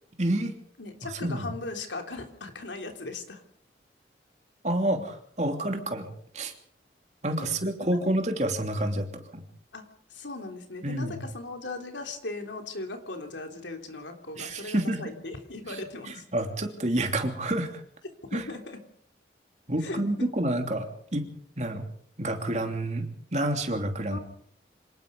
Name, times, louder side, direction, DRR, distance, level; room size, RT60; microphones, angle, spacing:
voice 1, 0.2-0.5 1.2-1.5 4.6-6.5 7.2-9.4 10.8-11.2 14.4-15.0 16.3-17.7 18.3-18.4 19.7-21.2 21.6-21.9 22.2-23.0 23.3-24.2, right 1 dB, 40° right, 4 dB, 3.0 m, -28 dB
voice 2, 0.8-3.4 7.4-7.5 7.9-8.1 9.7-9.8 10.1-16.2 18.3-18.8 19.8-20.3 24.1-24.2, left 2 dB, 90° left, 4 dB, 3.4 m, -38 dB
26.5 x 18.5 x 5.4 m, 0.65 s
head